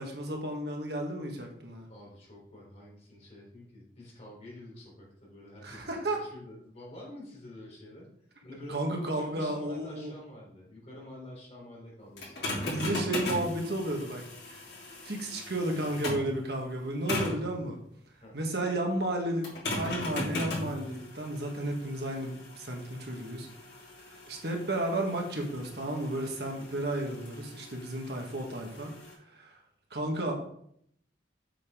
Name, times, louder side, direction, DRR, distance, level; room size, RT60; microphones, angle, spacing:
voice 1, 0.0-1.9 5.6-6.2 8.7-10.1 12.6-14.6 15.0-17.8 18.3-23.5 24.3-28.9 29.3-29.5 29.9-30.3, right 1 dB, 65° right, 1 dB, 1.5 m, -33 dB
voice 2, 1.9-8.1 8.4-12.6 18.2-18.4 26.6-26.9, left 1 dB, 35° left, -3 dB, 3.8 m, -48 dB
sound 1, 12.2-16.3 17.1-17.5 19.4-29.1, left 1 dB, 65° left, 3.4 m, -38 dB
7.6 x 7.0 x 3.7 m, 0.68 s
head